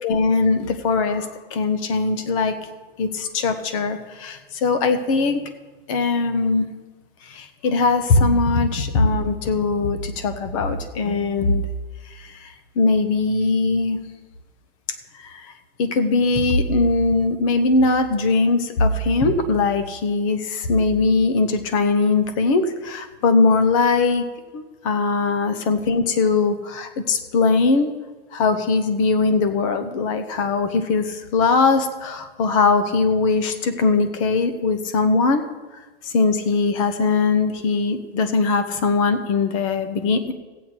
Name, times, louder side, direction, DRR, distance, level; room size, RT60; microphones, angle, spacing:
voice 1, 0.0-2.5 3.0-5.4 5.9-6.7 7.3-11.7 12.1-14.0 15.2-15.5 15.8-24.3 24.5-27.9 28.3-35.4 36.0-40.3, left 3 dB, 30° left, 11 dB, 0.9 m, -20 dB
15.0 x 8.4 x 4.4 m, 1.2 s
supercardioid pair, 175°, 32 cm